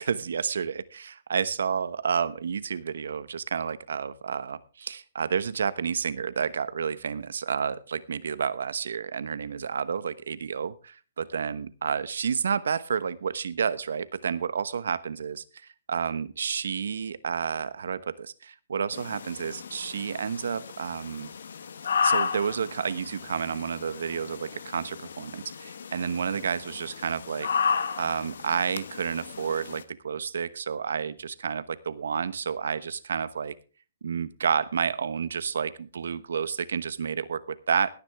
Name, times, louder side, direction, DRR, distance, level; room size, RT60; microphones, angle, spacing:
voice 1, 0.0-21.3 22.0-27.5 28.0-33.5 34.0-37.9, right 6 dB, 80° right, 15 dB, 1.1 m, -30 dB
sound 1, 18.9-29.8, left 6 dB, 75° left, 1.3 m, -33 dB
17.0 x 9.8 x 3.5 m, 0.35 s
hypercardioid pair, 155°, 0 cm